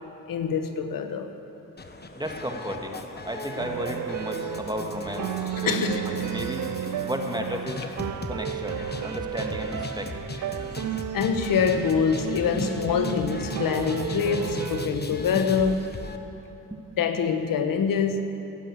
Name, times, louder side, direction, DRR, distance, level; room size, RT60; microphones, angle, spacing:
voice 1, 0.3-1.4 5.5-6.0 11.1-15.9 17.0-18.2, left 6 dB, 75° left, 8 dB, 1.1 m, -25 dB
sound 1, 1.8-16.2, left 3 dB, 30° left, 1.2 m, -38 dB
voice 2, 2.1-5.3 5.6-6.6 7.0-7.8 8.3-10.1 12.5-12.7 15.3-15.4 16.7-16.8, right 1 dB, 10° right, 2 dB, 1.8 m, -33 dB
sound 2, 3.6-14.9, right 11 dB, 60° right, 0.5 m, -33 dB
sound 3, 4.4-12.7, left 1 dB, 45° left, 3.0 m, -53 dB
16.5 x 7.5 x 8.6 m, 2.9 s
supercardioid pair, 45°, 34 cm